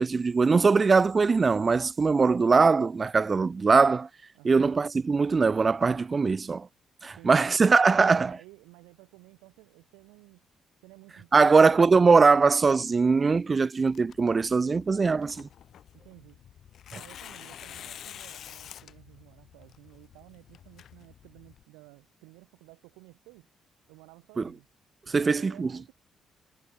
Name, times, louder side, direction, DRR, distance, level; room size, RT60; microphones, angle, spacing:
voice 1, 0.0-4.1 4.4-6.7 7.0-8.4 11.3-15.5 24.4-24.5 25.1-25.7, right 4 dB, 40° right, 0.4 m, -21 dB
voice 2, 4.3-4.7 7.1-7.6 8.0-10.5 10.8-12.1 15.9-16.4 16.9-23.5 23.9-24.7 25.1-25.9, right 27 dB, 85° right, 6.9 m, -53 dB
Tearing, 13.9-21.6, left 10 dB, 65° left, 2.3 m, -48 dB
hypercardioid pair, 45°, 0 cm